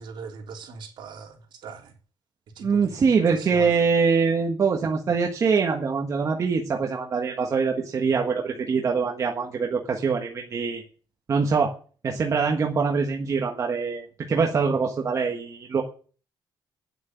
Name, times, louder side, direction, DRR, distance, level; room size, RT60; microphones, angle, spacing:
voice 1, 0.0-1.9 2.6-3.8, right 5 dB, 65° right, 1 dB, 3.4 m, -41 dB
voice 2, 2.6-10.8 11.3-11.7 12.0-15.8, right 5 dB, 40° right, 2 dB, 1.4 m, -24 dB
9.3 x 7.9 x 9.2 m, 0.41 s
cardioid pair, 150°, 8 cm